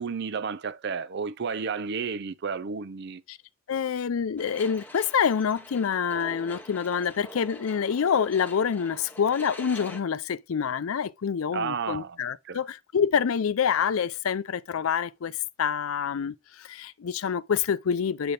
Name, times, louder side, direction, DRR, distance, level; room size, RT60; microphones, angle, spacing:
voice 1, 0.0-3.2 11.5-12.2 12.5-12.6, right 5 dB, 55° right, 0.5 m, -32 dB
voice 2, 3.7-18.3, left 7 dB, 80° left, 0.4 m, -27 dB
sound 1, 4.4-10.0, left 1 dB, 10° left, 1.0 m, -45 dB
7.8 x 4.2 x 3.3 m
head